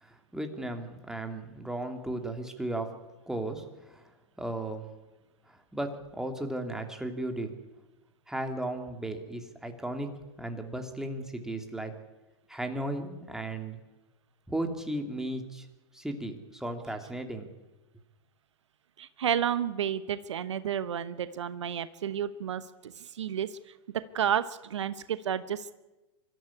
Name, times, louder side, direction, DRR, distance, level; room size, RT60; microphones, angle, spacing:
voice 1, 0.0-3.0 3.3-4.0 4.4-4.9 5.5-7.5 8.3-10.1 10.4-11.9 12.5-13.8 14.5-15.7 15.9-17.5, right 1 dB, 5° right, 5 dB, 3.0 m, -35 dB
voice 2, 19.0-23.6 24.1-25.7, right 9 dB, 75° right, 14 dB, 1.0 m, -31 dB
25.0 x 13.0 x 9.9 m, 1.1 s
hypercardioid pair, 105°, 15 cm